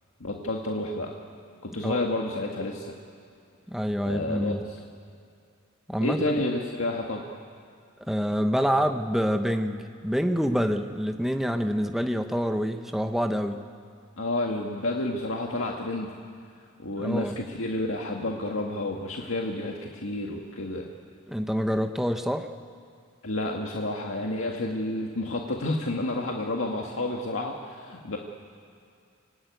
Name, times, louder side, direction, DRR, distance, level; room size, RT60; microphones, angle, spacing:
voice 1, 0.2-1.2 1.6-2.9 4.0-4.8 6.0-7.3 14.2-16.1 16.8-20.9 23.2-28.2, left 2 dB, 80° left, 0 dB, 1.8 m, -30 dB
voice 2, 3.7-4.6 5.9-6.4 8.1-13.6 17.0-17.4 21.3-22.5, equal, ahead, 6 dB, 0.8 m, -27 dB
25.5 x 19.0 x 9.4 m, 2.3 s
head